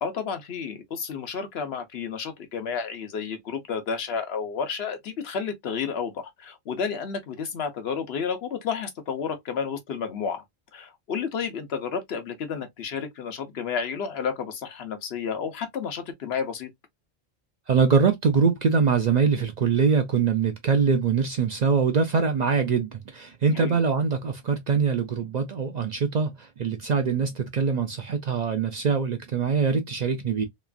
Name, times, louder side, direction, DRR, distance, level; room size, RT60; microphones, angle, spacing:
voice 1, 0.0-10.4 10.7-16.7 23.5-23.8, left 6 dB, 70° left, 1.0 m, -31 dB
voice 2, 17.7-30.5, right 5 dB, 55° right, 0.5 m, -23 dB
2.9 x 2.4 x 2.3 m
omnidirectional pair, 1.1 m